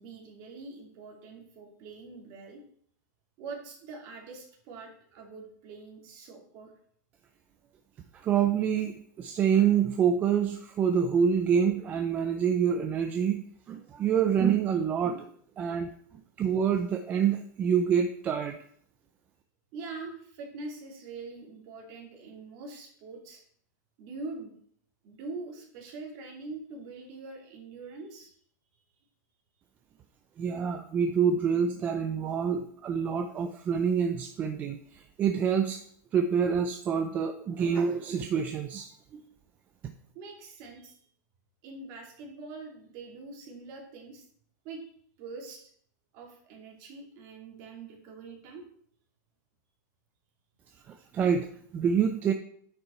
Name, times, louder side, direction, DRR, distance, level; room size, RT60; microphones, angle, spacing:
voice 1, 0.0-2.6 3.4-6.7 19.7-23.4 24.0-24.5 25.0-28.3 40.1-41.0 41.6-44.2 44.6-44.8 45.2-45.7 46.1-48.6, right 3 dB, 35° right, 0 dB, 2.4 m, -43 dB
voice 2, 8.2-15.3 15.6-15.9 16.4-18.6 30.4-35.8 36.1-39.2 50.9-51.5 51.7-52.3, right 7 dB, 15° right, 6 dB, 0.4 m, -27 dB
9.5 x 5.6 x 4.3 m, 0.62 s
supercardioid pair, 170°, 10 cm